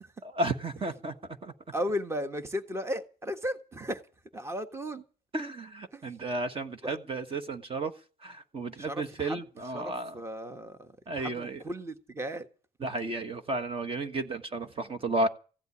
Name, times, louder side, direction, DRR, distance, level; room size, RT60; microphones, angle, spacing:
voice 1, 0.2-1.1 1.4-1.5 5.3-7.9 8.2-10.2 11.1-11.6 12.8-15.3, right 2 dB, 30° right, 1.5 m, -33 dB
voice 2, 1.7-4.0 4.3-5.0 5.9-6.0 6.8-7.0 8.8-9.4 9.7-10.9 11.2-12.5, equal, 15° right, 1.5 m, -35 dB
16.0 x 8.0 x 9.8 m
cardioid pair, 110°, 17 cm